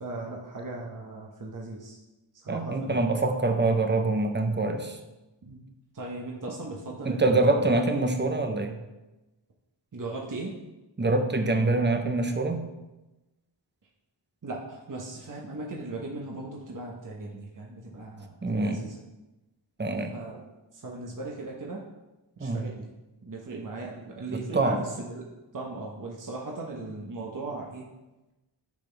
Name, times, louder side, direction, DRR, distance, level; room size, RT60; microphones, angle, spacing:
voice 1, 0.0-2.0 2.4-3.0 5.4-5.6 5.9-7.4 9.9-10.6 14.4-18.9 20.1-20.4 20.8-21.8 22.4-22.9 23.2-25.3 25.5-27.9, right 2 dB, 45° right, -2 dB, 1.1 m, -38 dB
voice 2, 2.5-5.0 7.0-8.8 11.0-12.6 18.4-18.9 19.8-20.1 22.4-22.6 24.3-24.8, right 2 dB, 25° right, 5 dB, 0.8 m, -25 dB
10.5 x 6.0 x 3.4 m, 1.0 s
wide cardioid pair, 110°, 46 cm